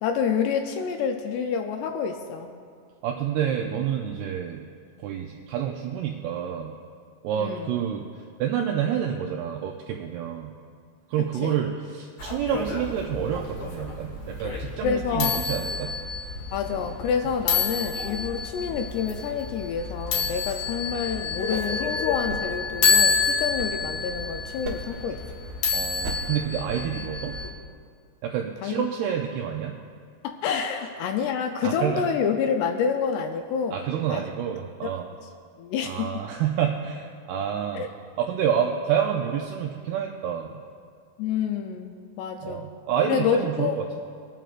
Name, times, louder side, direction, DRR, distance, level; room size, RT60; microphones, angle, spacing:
voice 1, 0.0-2.5 7.4-7.8 11.4-11.6 14.8-15.4 16.5-25.2 28.6-28.7 30.2-33.8 34.1-34.2 35.6-36.2 37.8-37.9 41.2-42.7 43.1-43.8, left 7 dB, 80° left, 5 dB, 2.5 m, -28 dB
voice 2, 3.0-4.7 5.0-6.8 7.2-8.1 8.4-10.5 11.1-15.9 25.7-27.4 28.2-29.8 31.6-32.0 33.7-35.1 35.8-37.9 38.2-40.6 42.4-44.0, right 9 dB, 80° right, 1 dB, 2.3 m, -28 dB
sound 1, 12.2-27.5, left 5 dB, 55° left, 1.6 m, -29 dB
sound 2, 22.3-24.2 24.6-25.1 26.0-26.5, right 2 dB, 65° right, 3.3 m, -38 dB
24.0 x 9.0 x 2.5 m, 2.1 s
omnidirectional pair, 5.2 m